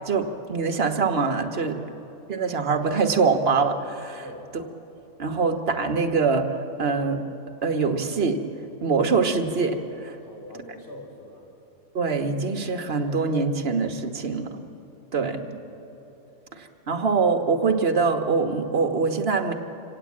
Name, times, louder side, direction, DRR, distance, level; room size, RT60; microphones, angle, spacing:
voice 1, 0.1-1.8 2.3-4.2 5.2-7.2 7.6-8.4 8.8-10.1 11.9-14.7 15.1-15.4 16.5-19.5, right 4 dB, 45° right, 5 dB, 1.5 m, -24 dB
voice 2, 4.2-4.5 10.2-11.5 15.3-15.7, left 1 dB, 40° left, 0 dB, 4.2 m, -44 dB
25.5 x 17.0 x 8.6 m, 2.9 s
omnidirectional pair, 1.5 m